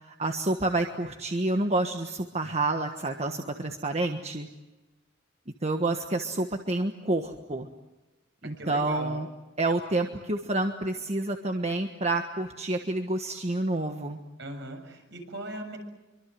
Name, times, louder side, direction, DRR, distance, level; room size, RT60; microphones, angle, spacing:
voice 1, 0.0-4.5 5.6-7.7 8.4-9.3 9.6-14.2, right 2 dB, 35° right, 5 dB, 1.4 m, -29 dB
voice 2, 8.4-9.2 14.4-15.8, right 1 dB, 60° right, 5 dB, 7.2 m, -38 dB
26.5 x 24.0 x 7.7 m, 1.1 s
head